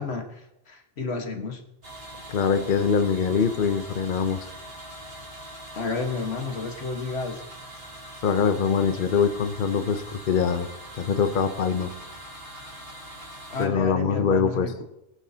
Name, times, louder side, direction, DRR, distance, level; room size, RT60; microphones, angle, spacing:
voice 1, 0.0-1.6 5.8-7.4 13.5-14.8, left 4 dB, 80° left, 4 dB, 1.7 m, -31 dB
sound 1, 1.8-13.7, right 1 dB, 65° right, 3.6 m, -42 dB
voice 2, 2.3-4.5 8.2-10.7 11.0-11.9 13.6-14.7, left 6 dB, 55° left, 8 dB, 0.9 m, -23 dB
22.5 x 11.0 x 2.8 m, 0.88 s
omnidirectional pair, 1.1 m